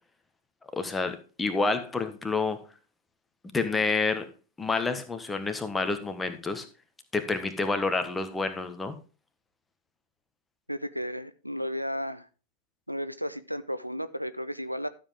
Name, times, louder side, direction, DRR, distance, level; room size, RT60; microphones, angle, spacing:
voice 1, 0.7-2.6 3.5-4.3 4.6-6.7 7.1-9.0, left 3 dB, 10° left, 9 dB, 1.5 m, -28 dB
voice 2, 10.7-12.3 12.9-14.9, equal, 90° right, 13 dB, 0.6 m, -33 dB
12.5 x 7.5 x 3.5 m, 0.34 s
figure-of-eight pair, 90°, 0 cm